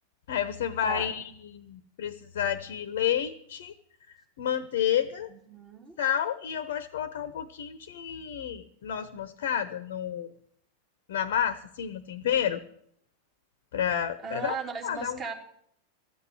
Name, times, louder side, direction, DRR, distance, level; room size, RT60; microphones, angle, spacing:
voice 1, 0.3-3.7 4.1-5.3 6.0-10.3 11.1-12.6 13.7-14.6 14.8-15.2, left 9 dB, 55° left, 15 dB, 0.8 m, -30 dB
voice 2, 5.3-6.0 14.2-15.3, right 5 dB, 30° right, 3 dB, 3.0 m, -37 dB
13.5 x 8.1 x 9.5 m, 0.66 s
figure-of-eight pair, 90°, 0 cm